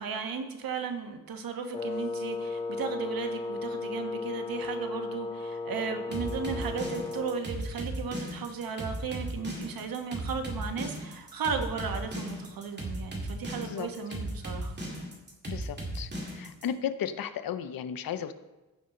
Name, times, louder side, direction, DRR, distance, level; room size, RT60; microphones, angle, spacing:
voice 1, 0.0-14.7, right 5 dB, 70° right, 6 dB, 1.3 m, -35 dB
Wind instrument woodwind instrument, 1.7-7.5, left 3 dB, 15° left, 0.5 m, -35 dB
sound 1, 6.1-16.6, right 1 dB, 30° right, 2.3 m, -36 dB
voice 2, 15.5-18.3, left 8 dB, 75° left, 12 dB, 0.7 m, -35 dB
15.0 x 5.5 x 3.9 m, 1.1 s
cardioid pair, 110°, 36 cm